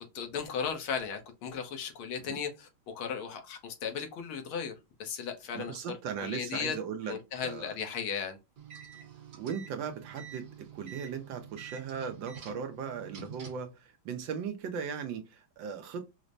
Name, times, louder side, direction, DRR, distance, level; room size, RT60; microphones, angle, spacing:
voice 1, 0.0-4.8 5.0-5.8 6.2-6.8 7.1-8.4, left 6 dB, 80° left, 1.7 m, -36 dB
voice 2, 5.5-7.2 7.4-7.7 9.4-16.1, right 7 dB, 75° right, 1.2 m, -38 dB
sound 1, 8.6-13.7, right 7 dB, 55° right, 1.5 m, -48 dB
5.0 x 2.1 x 2.5 m
omnidirectional pair, 2.3 m